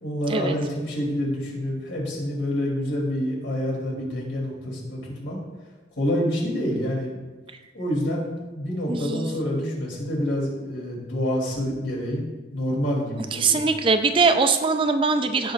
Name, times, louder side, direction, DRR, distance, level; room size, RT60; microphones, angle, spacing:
voice 1, 0.0-5.4 6.0-7.2 7.7-12.2 12.5-13.7, equal, 75° left, -3 dB, 2.9 m, -27 dB
voice 2, 8.9-9.4 13.3-15.5, right 4 dB, 25° right, 8 dB, 0.4 m, -22 dB
16.0 x 5.4 x 2.4 m, 1.3 s
head